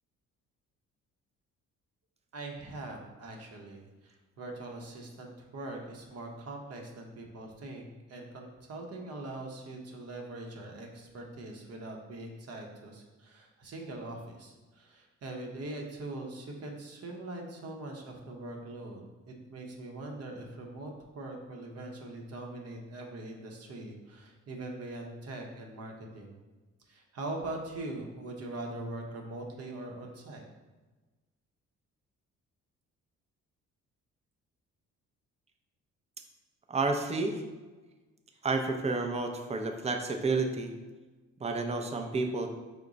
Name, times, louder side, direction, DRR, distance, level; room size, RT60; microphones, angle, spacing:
voice 1, 2.3-26.3 26.9-30.4, right 2 dB, 55° right, 1 dB, 0.8 m, -42 dB
voice 2, 36.7-37.4 38.4-40.7 41.4-42.5, right 3 dB, 20° right, 5 dB, 0.5 m, -30 dB
5.0 x 2.2 x 3.8 m, 1.2 s
cardioid pair, 90°, 30 cm